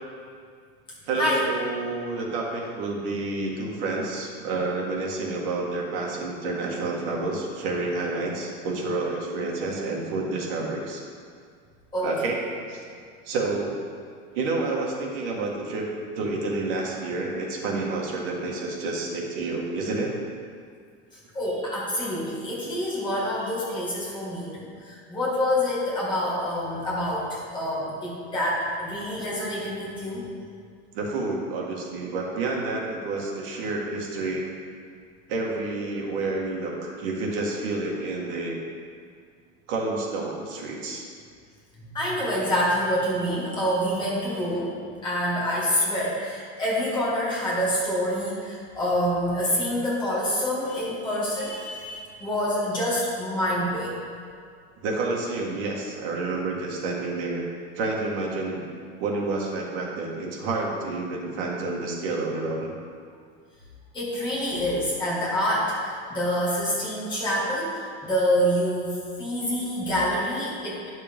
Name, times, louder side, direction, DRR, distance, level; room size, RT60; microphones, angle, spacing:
voice 1, 1.1-11.0 12.0-12.8 13.3-13.9 14.3-15.9 16.2-20.2 30.9-34.4 35.3-38.6 39.7-41.1 54.8-57.4 57.8-58.6 59.0-62.7, right 3 dB, 60° right, -2 dB, 1.7 m, -29 dB
voice 2, 21.3-30.2 41.9-44.7 45.0-53.9 63.9-70.8, equal, 15° left, -7 dB, 2.0 m, -26 dB
10.5 x 6.6 x 3.5 m, 2.1 s
supercardioid pair, 175°, 32 cm